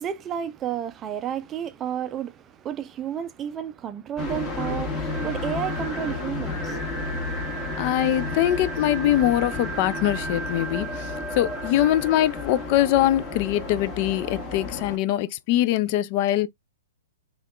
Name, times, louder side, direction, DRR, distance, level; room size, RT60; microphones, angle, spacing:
voice 1, 0.0-6.8, right 9 dB, 25° right, 0.4 m, -31 dB
sound 1, 4.2-15.0, left 1 dB, 20° left, 1.3 m, -31 dB
voice 2, 7.8-16.5, left 13 dB, 45° left, 0.3 m, -23 dB
3.4 x 2.3 x 2.3 m
hypercardioid pair, 115°, 0 cm